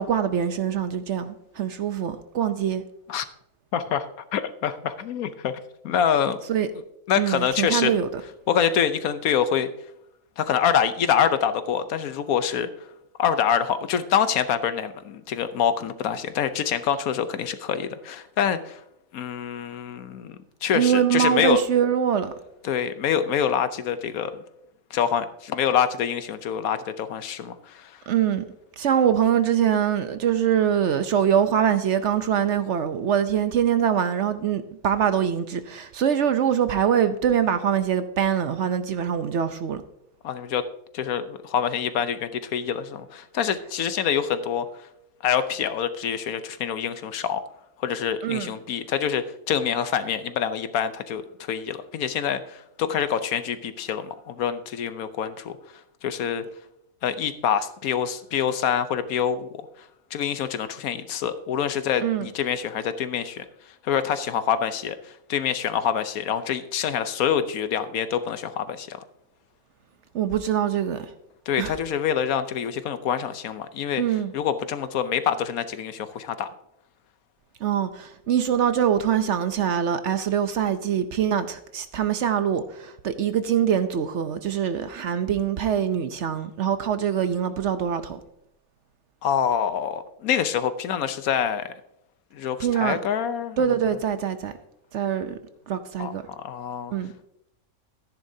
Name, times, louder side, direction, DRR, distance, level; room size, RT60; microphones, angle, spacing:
voice 1, 0.0-2.8 6.5-6.7 7.2-8.1 20.7-22.3 28.1-28.4 28.8-39.8 48.2-48.5 62.0-62.3 70.1-71.1 71.6-71.7 74.0-74.3 77.6-88.2 92.6-93.0 93.6-94.5 94.9-95.4 95.7-96.2 96.9-97.1, right 8 dB, 60° right, 0.9 m, -23 dB
voice 2, 3.7-5.6 5.8-6.4 7.1-7.9 8.5-9.7 10.4-12.7 13.2-18.8 19.1-21.6 22.6-24.3 24.9-28.0 40.2-40.6 40.9-44.9 45.2-47.4 47.8-55.6 56.0-56.4 57.0-59.5 60.1-63.4 63.8-69.0 71.5-74.0 74.3-76.5 89.2-91.7 92.3-93.6 96.0-96.9, left 8 dB, 75° left, 1.2 m, -26 dB
13.5 x 10.5 x 2.7 m
omnidirectional pair, 1.5 m